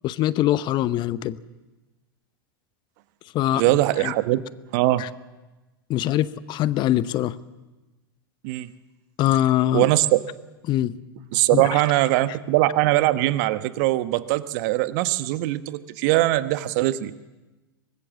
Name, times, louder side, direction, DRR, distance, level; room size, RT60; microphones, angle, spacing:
voice 1, 0.0-1.4 3.3-3.6 4.0-4.1 5.0-5.1 5.9-7.4 9.2-9.9 10.7-10.9 11.5-11.6, left 13 dB, 40° left, 17 dB, 0.8 m, -22 dB
voice 2, 3.5-4.4 4.7-5.1 8.4-8.7 9.7-10.2 11.3-17.1, right 17 dB, 55° right, 13 dB, 1.1 m, -21 dB
24.0 x 19.5 x 7.4 m, 1.1 s
figure-of-eight pair, 90°, 12 cm